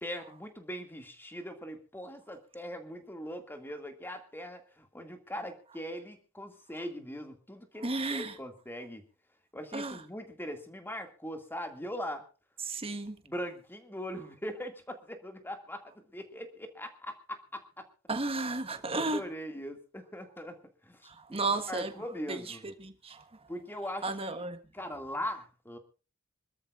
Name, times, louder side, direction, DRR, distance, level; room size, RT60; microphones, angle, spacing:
voice 1, 0.0-9.0 9.5-12.2 13.2-17.9 18.9-22.6 23.5-24.4 24.7-25.8, equal, 10° left, 2.2 m, -41 dB
voice 2, 7.8-8.3 9.7-10.0 12.6-13.2 18.1-19.2 21.1-21.9 22.3-22.5 22.8-23.2 24.0-24.6, right 3 dB, 25° right, 1.4 m, -33 dB
26.5 x 13.0 x 2.5 m
head